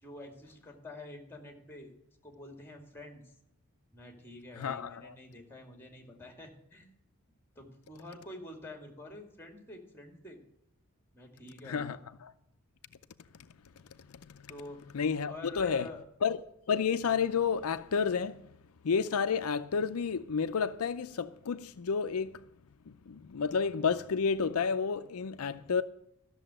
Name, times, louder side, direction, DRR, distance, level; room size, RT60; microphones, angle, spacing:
voice 1, 0.0-1.9 2.2-3.3 3.9-6.9 7.6-10.4 11.1-12.0 14.5-15.0 15.3-16.1, left 2 dB, 10° left, 2.4 m, -48 dB
voice 2, 4.6-5.1 11.6-12.3 14.3-14.4 14.9-15.9 16.2-16.4 16.7-18.4 18.8-22.4 22.9-25.8, left 6 dB, 80° left, 0.5 m, -31 dB
13.0 x 6.9 x 7.7 m
head